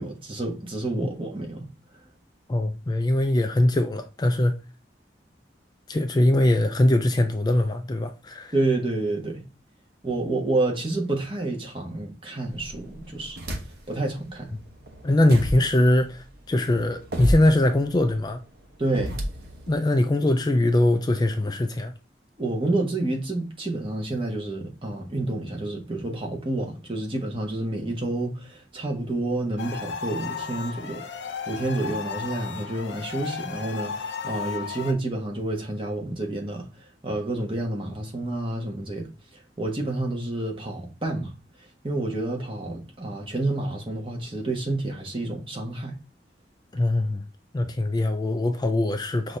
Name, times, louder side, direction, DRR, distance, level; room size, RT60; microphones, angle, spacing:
voice 1, 0.0-1.7 8.5-9.4 10.0-13.4 13.9-14.5 18.8-19.2 22.4-31.0 31.5-36.7 37.0-39.1 39.6-41.3 41.8-45.9, right 2 dB, 30° right, 1.2 m, -29 dB
voice 2, 2.5-4.5 5.9-8.5 15.0-18.4 19.7-21.9 46.7-47.2 47.5-49.4, left 1 dB, 25° left, 0.4 m, -22 dB
sound 1, 12.5-14.0 14.4-19.7, equal, 60° right, 1.1 m, -32 dB
sound 2, 29.6-34.9, left 6 dB, 85° left, 0.6 m, -34 dB
5.6 x 2.7 x 3.2 m
head